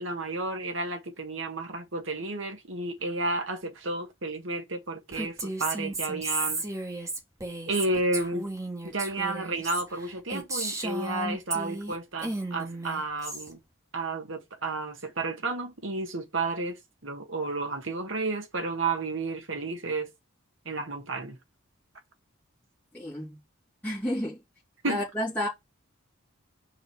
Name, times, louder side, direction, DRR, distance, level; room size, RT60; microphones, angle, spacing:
voice 1, 0.0-6.6 7.7-8.5 8.8-13.6 13.9-20.1 20.7-21.4 24.8-25.0, right 2 dB, 70° right, 2.0 m, -32 dB
Female speech woman speaking, 5.1-12.0 12.2-13.5, right 2 dB, 15° right, 1.9 m, -34 dB
voice 2, 22.9-23.4 23.8-24.4 24.9-25.5, left 1 dB, 10° left, 3.1 m, -31 dB
5.1 x 4.6 x 6.1 m
head